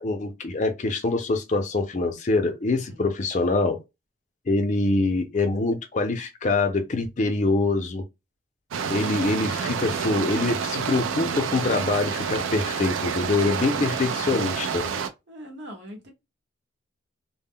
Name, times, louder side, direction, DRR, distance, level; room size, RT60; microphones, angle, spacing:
voice 1, 0.0-3.8 4.5-8.0 8.9-14.9, left 3 dB, 40° left, 0.5 m, -24 dB
sound 1, 8.7-15.1, right 6 dB, 85° right, 0.4 m, -28 dB
voice 2, 15.3-16.1, equal, 65° right, 0.9 m, -42 dB
2.1 x 2.0 x 3.6 m
head